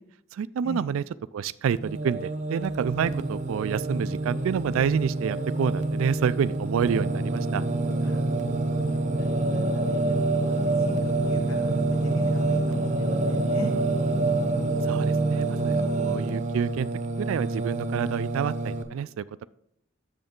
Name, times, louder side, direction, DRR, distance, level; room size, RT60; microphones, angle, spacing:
voice 1, 0.3-1.0 1.3-7.6 14.9-16.9 17.2-19.4, right 7 dB, 75° right, 18 dB, 0.3 m, -28 dB
Singing, 1.7-18.8, right 2 dB, 35° right, 0.6 m, -27 dB
voice 2, 8.7-10.2 10.5-13.7, left 1 dB, 85° left, 4 dB, 0.9 m, -42 dB
7.8 x 6.8 x 3.6 m, 0.77 s
head